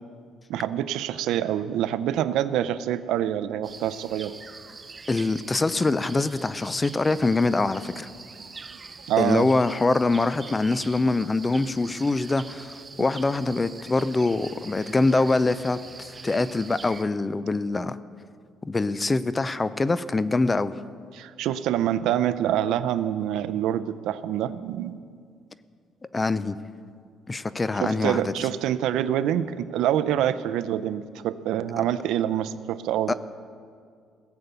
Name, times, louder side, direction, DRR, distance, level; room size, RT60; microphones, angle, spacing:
voice 1, 0.5-4.3 9.1-9.5 16.3-16.5 21.1-25.0 27.8-33.1, right 11 dB, 80° right, 14 dB, 0.5 m, -26 dB
sound 1, 3.6-17.0, right 4 dB, 25° right, 0.6 m, -44 dB
voice 2, 5.1-8.1 9.2-18.0 18.6-20.7 26.1-26.6 27.3-28.3 33.1-33.2, left 3 dB, 20° left, 15 dB, 0.5 m, -24 dB
17.0 x 7.0 x 8.1 m, 2.2 s
cardioid pair, 125°, 0 cm